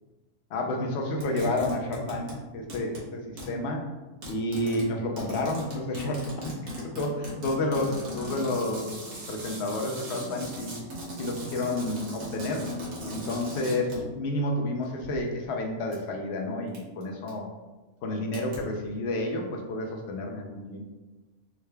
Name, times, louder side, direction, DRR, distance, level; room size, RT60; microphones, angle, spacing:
voice 1, 0.5-3.8 4.3-10.8 11.2-12.6 13.1-17.5 18.0-20.8, left 1 dB, 70° left, 1 dB, 0.6 m, -30 dB
sound 1, 1.2-2.4 2.7-3.1 3.4-3.6 4.2-14.2 14.8-15.2 15.9-16.0 16.7-17.0 17.3-17.4 18.3-18.6, equal, 75° right, 1.5 m, -38 dB
3.7 x 2.2 x 3.2 m, 1.2 s
omnidirectional pair, 1.7 m